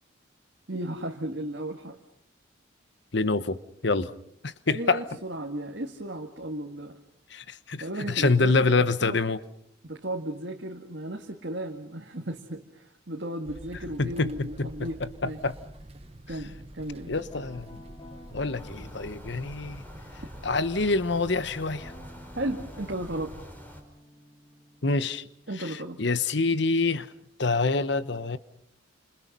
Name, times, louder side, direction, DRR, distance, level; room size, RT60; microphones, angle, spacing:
voice 1, 0.7-2.0 4.7-7.0 7.8-9.2 9.8-15.4 16.3-17.2 22.3-23.4 25.5-26.0, right 1 dB, 55° right, 2.1 m, -35 dB
voice 2, 3.1-4.1 4.4-5.0 7.3-9.4 14.0-14.9 15.4-15.5 17.1-17.8 18.3-19.8 20.4-21.9 24.8-25.2 26.0-27.1 27.4-28.4, left 3 dB, 60° left, 1.0 m, -26 dB
sound 1, 13.4-23.4, right 1 dB, 30° right, 1.2 m, -47 dB
Guitar, 17.3-21.1 21.7-26.5, left 1 dB, 25° left, 3.5 m, -52 dB
sound 2, 18.5-23.8, equal, 10° left, 4.8 m, -47 dB
29.5 x 27.5 x 5.4 m
head